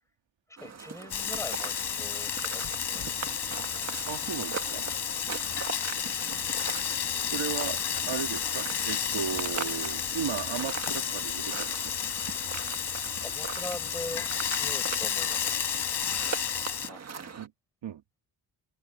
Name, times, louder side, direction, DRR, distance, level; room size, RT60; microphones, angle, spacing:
voice 1, 0.5-3.5 13.0-14.3 14.6-15.7 16.8-17.0, left 1 dB, 5° left, 5.3 m, -42 dB
sound 1, 0.6-17.5, right 6 dB, 35° right, 1.6 m, -40 dB
Frying (food), 1.1-16.9, left 8 dB, 65° left, 4.2 m, -32 dB
voice 2, 4.1-4.8 7.2-7.8 8.1-12.1 17.4-17.5 17.8-18.0, right 8 dB, 80° right, 2.1 m, -35 dB
wide cardioid pair, 180°, 44 cm